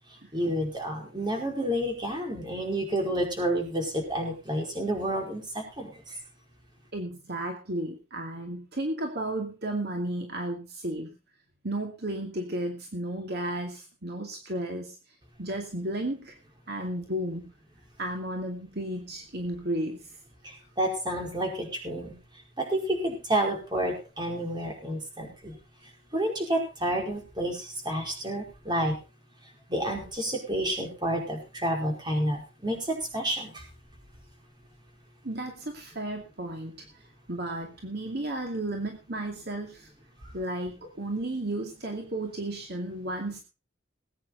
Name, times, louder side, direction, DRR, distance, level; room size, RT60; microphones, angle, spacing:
voice 1, 0.3-5.4 5.8-5.9 20.8-22.1 22.6-25.5 26.1-28.9 29.7-33.5, right 1 dB, 25° right, 1 dB, 5.1 m, -29 dB
voice 2, 6.9-11.1 11.6-15.0 15.4-16.4 16.7-17.5 18.0-20.0 35.2-36.8 37.3-39.9 40.3-43.4, right 1 dB, 55° right, 3 dB, 2.4 m, -33 dB
20.0 x 9.4 x 4.1 m, 0.31 s
head